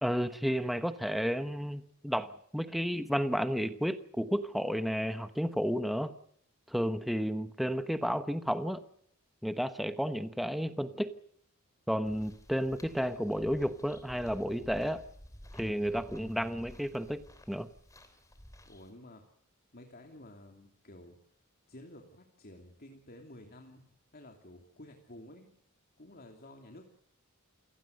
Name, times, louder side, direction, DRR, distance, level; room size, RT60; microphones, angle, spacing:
voice 1, 0.0-6.1 6.7-8.8 9.4-11.1 11.9-15.0 15.5-17.2 17.5-17.7, equal, ahead, 10 dB, 1.1 m, -32 dB
sound 1, 12.0-18.9, equal, 15° left, 3.3 m, -53 dB
voice 2, 18.6-19.2 19.7-21.2 21.7-25.5 26.0-26.9, left 1 dB, 45° left, 3 dB, 2.9 m, -52 dB
28.5 x 17.5 x 6.6 m, 0.70 s
head